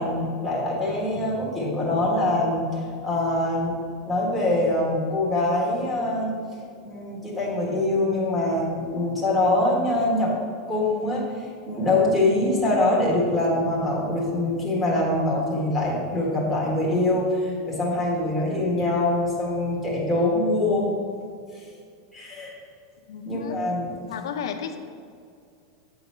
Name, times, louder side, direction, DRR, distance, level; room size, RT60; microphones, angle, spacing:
voice 1, 0.0-3.8 4.1-6.3 6.8-10.3 10.7-11.3 11.7-20.9 21.5-21.7 22.1-22.6 23.3-23.9, left 2 dB, 5° right, -7 dB, 1.4 m, -24 dB
voice 2, 23.1-23.6 24.1-24.8, left 7 dB, 85° left, 5 dB, 0.6 m, -33 dB
8.5 x 4.0 x 5.6 m, 2.3 s
supercardioid pair, 175°, 2 cm